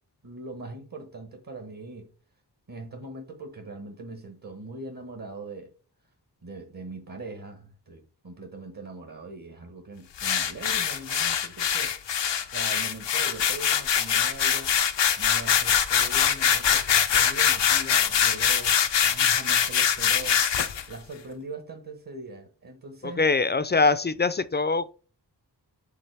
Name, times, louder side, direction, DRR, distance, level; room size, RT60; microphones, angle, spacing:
voice 1, 0.2-2.1 2.7-5.7 6.4-12.0 12.4-14.7 15.2-18.8 19.1-20.5 20.9-23.2, right 2 dB, 50° right, 1.3 m, -41 dB
sound 1, 10.2-20.8, left 8 dB, 80° left, 0.6 m, -23 dB
voice 2, 23.0-24.9, left 4 dB, 25° left, 0.4 m, -23 dB
7.3 x 3.8 x 3.4 m
wide cardioid pair, 55°, 42 cm